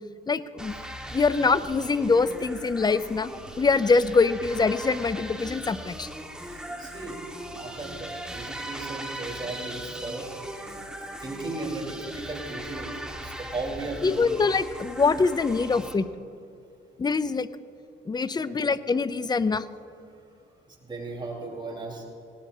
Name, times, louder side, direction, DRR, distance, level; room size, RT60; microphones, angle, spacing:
voice 1, 0.3-0.7 1.1-3.3 3.6-6.1 14.0-16.1 17.0-17.5 18.1-19.7, left 4 dB, 20° left, 15 dB, 0.5 m, -24 dB
sound 1, 0.6-15.9, right 1 dB, 5° right, 1.6 m, -39 dB
voice 2, 6.4-14.4 18.5-18.6 20.7-22.0, right 2 dB, 25° right, -2 dB, 4.3 m, -37 dB
19.5 x 18.0 x 2.8 m, 2.6 s
cardioid pair, 90°, 20 cm